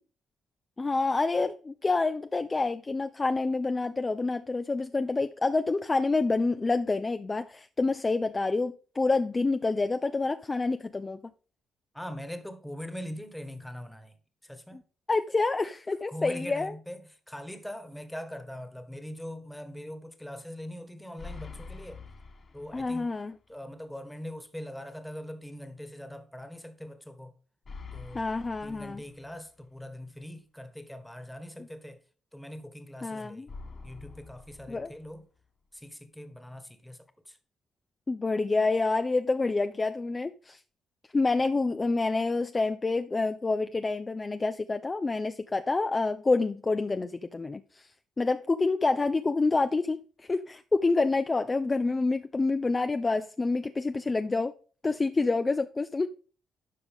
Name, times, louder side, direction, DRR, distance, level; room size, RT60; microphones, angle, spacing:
voice 1, 0.8-11.2 15.1-16.7 22.7-23.3 28.1-29.0 33.0-33.5 34.7-34.9 38.1-40.6 41.1-47.9 48.2-54.5 54.8-56.1, left 3 dB, 25° left, 0.4 m, -27 dB
voice 2, 11.9-14.1 14.4-14.8 16.1-22.0 22.5-23.1 23.5-27.3 27.9-28.2 28.6-32.0 32.3-33.5 33.8-35.2 35.7-37.4, equal, 5° left, 1.4 m, -42 dB
sound 1, 21.2-23.2 23.5-23.6 27.6-29.6 33.5-35.4, left 4 dB, 45° left, 1.9 m, -46 dB
12.0 x 4.9 x 3.6 m
cardioid pair, 90°, 0 cm